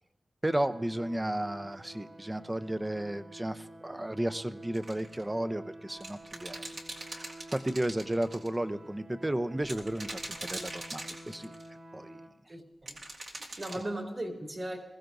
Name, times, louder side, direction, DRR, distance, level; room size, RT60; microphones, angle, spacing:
voice 1, 0.4-6.7 7.0-11.5 11.9-12.2, right 1 dB, 15° right, 12 dB, 0.6 m, -33 dB
sound 1, 0.6-12.3, right 2 dB, 90° right, 2.8 m, -49 dB
sound 2, 4.7-5.2 6.0-8.5 9.6-11.7 12.9-13.8, right 2 dB, 70° right, 2.3 m, -41 dB
voice 2, 12.5-13.0 13.3-14.8, right 1 dB, 40° right, 1 dB, 2.9 m, -38 dB
21.5 x 15.5 x 2.6 m, 1.0 s
wide cardioid pair, 115°, 0 cm